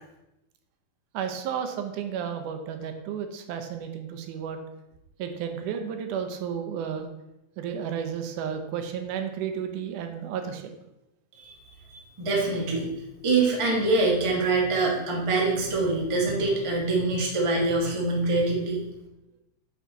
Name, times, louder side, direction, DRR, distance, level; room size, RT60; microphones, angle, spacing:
voice 1, 1.1-4.6 5.2-7.1 7.6-10.7, right 8 dB, 85° right, 6 dB, 2.3 m, -32 dB
voice 2, 11.9-12.9 13.2-18.8, right 3 dB, 35° right, -3 dB, 0.4 m, -24 dB
8.9 x 4.6 x 4.0 m, 0.90 s
omnidirectional pair, 3.5 m